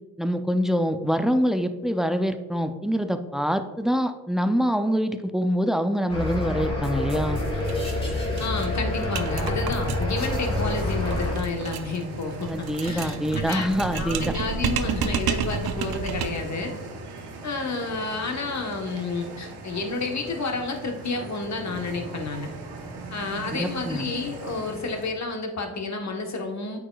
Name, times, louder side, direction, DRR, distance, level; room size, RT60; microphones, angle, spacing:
voice 1, 0.2-7.4 12.5-14.3 23.6-24.0, equal, ahead, 8 dB, 0.4 m, -25 dB
sound 1, 6.1-11.4, left 2 dB, 15° left, 1.6 m, -27 dB
sound 2, 7.6-7.7 8.0-8.1 8.4-16.5, right 7 dB, 65° right, 0.6 m, -31 dB
voice 2, 8.4-16.7 17.4-22.5 23.1-26.8, left 3 dB, 45° left, 3 dB, 1.1 m, -30 dB
sound 3, 10.2-25.1, right 2 dB, 85° right, 1.0 m, -39 dB
8.7 x 4.8 x 2.3 m, 1.2 s
cardioid pair, 75°, 39 cm